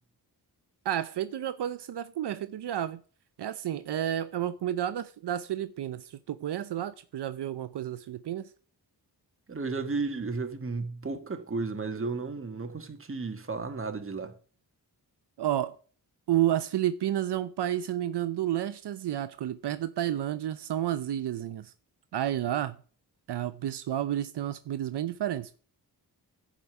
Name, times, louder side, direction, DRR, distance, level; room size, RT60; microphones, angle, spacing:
voice 1, 0.8-3.0 3.4-8.5 15.4-15.8 16.3-21.7 22.1-22.8 23.3-25.6, right 11 dB, 80° right, 0.7 m, -31 dB
voice 2, 9.5-14.4, right 4 dB, 30° right, 1.8 m, -33 dB
11.5 x 5.1 x 8.1 m
wide cardioid pair, 100°, 40 cm